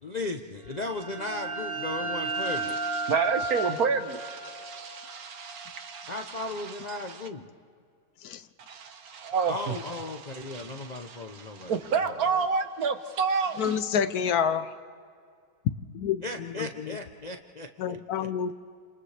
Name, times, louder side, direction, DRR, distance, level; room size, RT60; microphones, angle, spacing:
voice 1, 0.0-2.8 6.1-7.5 9.5-12.1 16.2-18.5, left 2 dB, 45° left, 0.6 m, -36 dB
sound 1, 0.7-6.2, right 2 dB, 45° right, 1.1 m, -34 dB
voice 2, 2.4-7.2 8.7-9.7 10.2-13.8, right 5 dB, 65° right, 1.5 m, -30 dB
voice 3, 13.6-14.7 15.9-17.0 17.8-18.5, left 7 dB, 70° left, 1.2 m, -28 dB
29.5 x 27.0 x 3.3 m
omnidirectional pair, 1.7 m